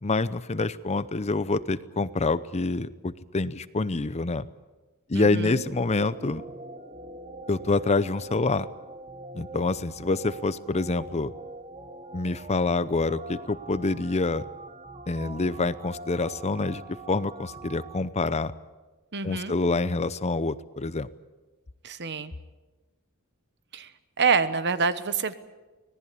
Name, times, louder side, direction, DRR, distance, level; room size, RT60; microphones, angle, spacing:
voice 1, 0.0-4.5 5.1-6.4 7.5-8.7 9.3-11.3 12.1-14.4 15.1-16.8 17.1-18.5 19.2-21.1, left 3 dB, 30° left, 15 dB, 0.7 m, -26 dB
voice 2, 5.1-5.6 19.1-19.5 21.8-22.3 23.7-23.9 24.2-25.3, right 5 dB, 50° right, 12 dB, 1.2 m, -26 dB
sound 1, 5.4-18.0, right 2 dB, 30° right, 1.3 m, -43 dB
25.0 x 18.5 x 8.4 m, 1.2 s
head